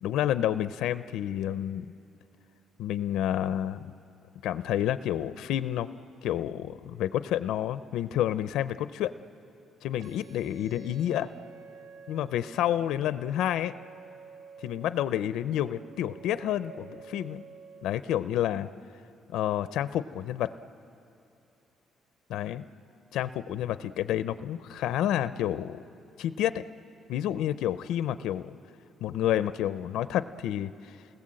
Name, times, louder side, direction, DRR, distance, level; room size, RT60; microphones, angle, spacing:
voice 1, 0.0-1.9 2.8-3.9 4.4-5.9 6.2-9.1 9.8-11.3 12.1-13.7 14.6-17.4 17.8-18.7 19.3-20.5 22.3-22.7 23.1-25.8 26.2-26.6 27.1-28.5 29.0-31.0, left 11 dB, 80° left, 13 dB, 0.5 m, -29 dB
sound 1, 10.0-18.0, right 5 dB, 75° right, 1.4 m, -50 dB
29.5 x 19.5 x 7.6 m, 2.7 s
cardioid pair, 170°, 0 cm